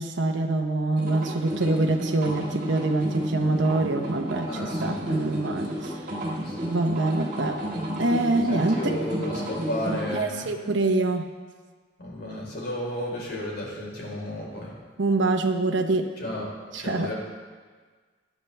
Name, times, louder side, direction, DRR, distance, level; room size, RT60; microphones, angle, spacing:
voice 1, 0.0-4.5 4.8-5.9 6.7-7.6 8.0-9.0 10.1-11.3 15.0-16.1 16.7-17.1, right 2 dB, 75° right, 3 dB, 0.9 m, -25 dB
sound 1, 0.9-10.1, equal, 50° right, 4.0 m, -32 dB
voice 2, 4.4-5.0 5.5-5.9 6.3-6.7 8.5-10.5 12.0-14.7 16.2-17.1, equal, 60° left, -4 dB, 4.2 m, -33 dB
18.0 x 11.5 x 3.4 m, 1.5 s
head